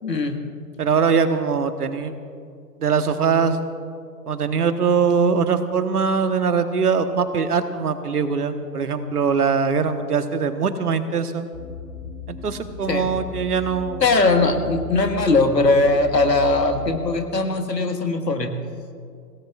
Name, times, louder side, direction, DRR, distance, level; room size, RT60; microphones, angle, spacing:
voice 1, 0.0-0.4 12.9-13.1 14.0-18.5, left 3 dB, 85° left, 5 dB, 1.8 m, -20 dB
voice 2, 0.8-2.2 2.8-3.6 4.3-11.5 12.3-14.0, right 6 dB, 65° right, 9 dB, 1.3 m, -22 dB
sound 1, 11.5-17.0, left 5 dB, 20° left, 2.5 m, -36 dB
26.0 x 17.5 x 2.4 m, 2.2 s
figure-of-eight pair, 130°, 48 cm